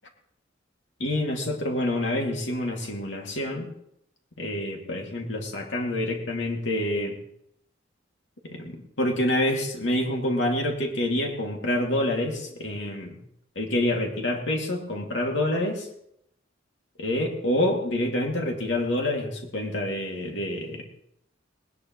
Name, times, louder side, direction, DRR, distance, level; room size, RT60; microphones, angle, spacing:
voice 1, 1.0-3.7 4.4-7.2 8.4-13.2 13.6-15.9 17.0-20.8, left 1 dB, 70° left, 1 dB, 2.5 m, -27 dB
20.5 x 19.0 x 3.2 m, 0.76 s
head